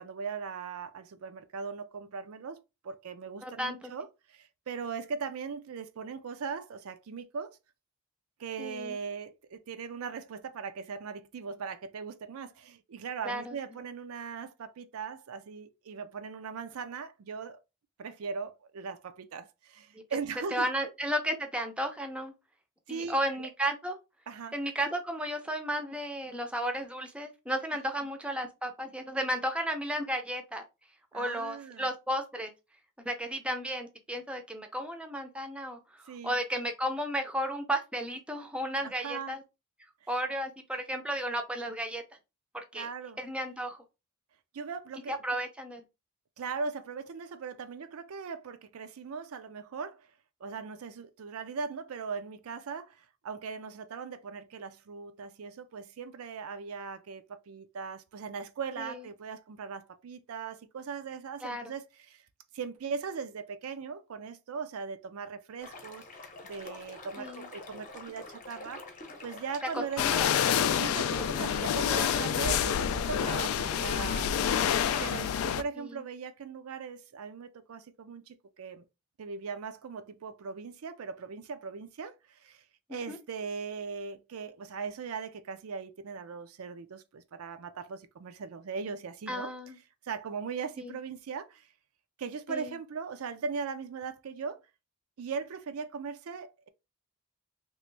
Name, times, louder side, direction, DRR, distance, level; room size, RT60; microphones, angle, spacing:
voice 1, 0.0-7.6 8.4-17.6 18.0-20.9 22.9-23.5 24.3-24.5 31.1-31.9 36.1-36.4 38.8-39.4 42.7-43.2 44.5-45.2 46.4-50.1 50.4-62.2 62.5-66.0 66.4-68.9 69.2-70.0 70.7-74.6 75.0-78.8 79.2-82.6 82.9-89.5 90.0-91.7 92.2-94.6 95.2-96.7, right 5 dB, 90° right, 0.4 m, -39 dB
voice 2, 3.4-3.9 8.6-9.0 13.2-13.6 20.5-22.3 22.9-24.0 24.5-30.6 31.1-32.5 33.1-35.8 36.1-39.4 40.1-42.0 42.7-42.9 43.2-43.8 45.1-45.8 58.8-59.0 61.4-61.6 67.2-67.5 69.7-70.3 75.8-75.9 82.9-83.2 89.3-89.8 90.8-91.0 92.5-92.8, equal, 5° right, 0.5 m, -33 dB
sound 1, 65.6-75.2, left 2 dB, 35° left, 0.8 m, -46 dB
sound 2, 70.0-75.6, left 9 dB, 75° left, 0.3 m, -28 dB
3.1 x 2.5 x 3.2 m
head